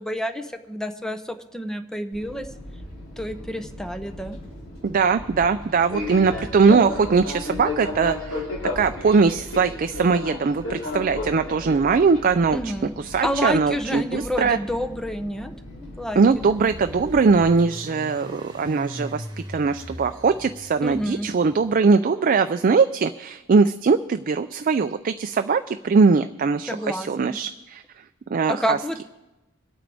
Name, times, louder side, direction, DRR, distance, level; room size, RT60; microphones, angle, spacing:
voice 1, 0.0-2.5 3.2-4.4 12.5-12.9 13.2-15.5 15.8-16.2 20.8-21.3 26.7-27.4 28.5-29.0, equal, 5° left, 7 dB, 0.7 m, -29 dB
Fixed-wing aircraft airplane, 2.1-17.5, left 1 dB, 80° left, 4.2 m, -35 dB
voice 2, 4.8-8.5 8.8-12.7 13.0-14.6 16.2-27.8 28.3-28.8, right 5 dB, 40° right, 9 dB, 0.4 m, -21 dB
sound 1, 16.3-21.8, right 1 dB, 20° right, 1.5 m, -40 dB
25.5 x 8.9 x 3.5 m, 1.0 s
head